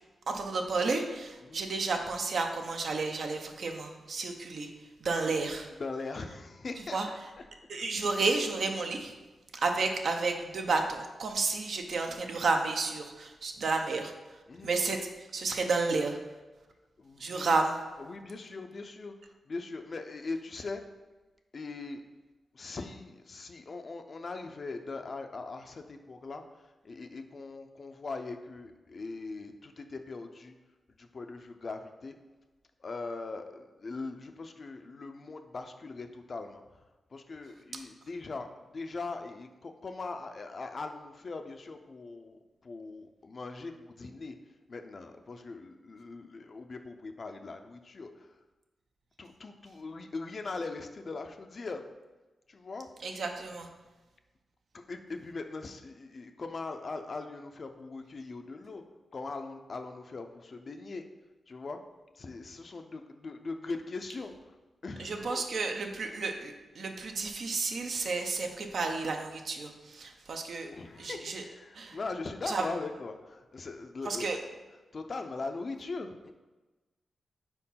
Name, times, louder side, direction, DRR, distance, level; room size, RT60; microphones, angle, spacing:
voice 1, 0.3-4.7 5.0-5.7 6.9-7.1 7.7-9.1 9.6-14.1 14.6-15.0 15.3-16.2 17.2-17.8 53.0-53.7 65.0-70.7 71.0-71.4 71.8-72.0 72.5-72.6 74.1-74.4, right 3 dB, 65° right, 4 dB, 0.7 m, -31 dB
voice 2, 5.8-7.4 14.5-14.8 17.0-17.5 18.0-19.1 19.5-20.8 21.5-22.0 22.5-26.4 26.8-30.5 31.0-32.2 32.8-36.6 37.1-38.5 38.7-44.3 44.7-48.3 49.2-51.8 52.5-52.9 54.7-58.8 59.1-61.0 61.5-61.8 62.2-64.3 64.8-65.4 70.7-74.3 74.9-76.3, left 3 dB, 45° left, 6 dB, 0.5 m, -40 dB
4.5 x 4.5 x 5.6 m, 1.2 s
cardioid pair, 95°, 0 cm